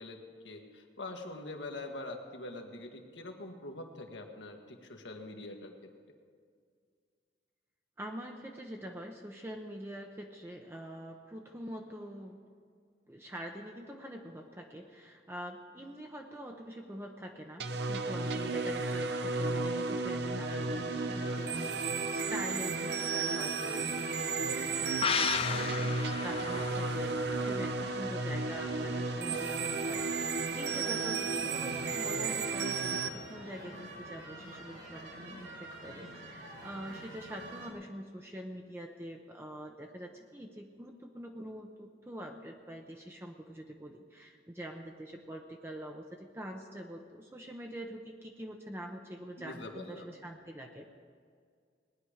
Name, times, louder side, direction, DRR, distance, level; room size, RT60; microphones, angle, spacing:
voice 1, 0.0-5.7 49.4-50.2, left 2 dB, 85° left, 3 dB, 1.5 m, -44 dB
voice 2, 8.0-12.4 13.1-50.9, equal, 15° right, 2 dB, 0.7 m, -45 dB
sound 1, 17.6-33.1, right 4 dB, 65° right, 0.7 m, -33 dB
sound 2, 20.4-37.7, right 1 dB, 85° right, 3.7 m, -46 dB
sound 3, 25.0-28.5 28.8-28.9, left 7 dB, 30° left, 0.3 m, -35 dB
19.0 x 10.5 x 4.9 m, 2.1 s
head